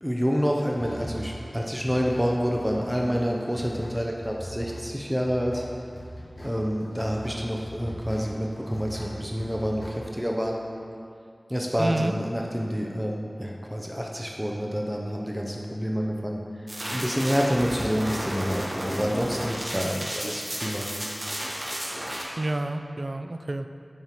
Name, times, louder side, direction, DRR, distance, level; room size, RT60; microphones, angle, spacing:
voice 1, 0.0-5.6 6.4-10.6 11.5-16.6 16.9-20.8, equal, 5° right, -1 dB, 0.5 m, -28 dB
sound 1, 0.7-10.3, equal, 35° left, 0.7 m, -41 dB
voice 2, 11.8-12.2 22.4-23.7, right 2 dB, 55° right, 7 dB, 0.3 m, -29 dB
sound 2, 16.7-22.2, equal, 35° right, 1.3 m, -32 dB
8.8 x 5.4 x 2.9 m, 2.4 s
wide cardioid pair, 55°, 0 cm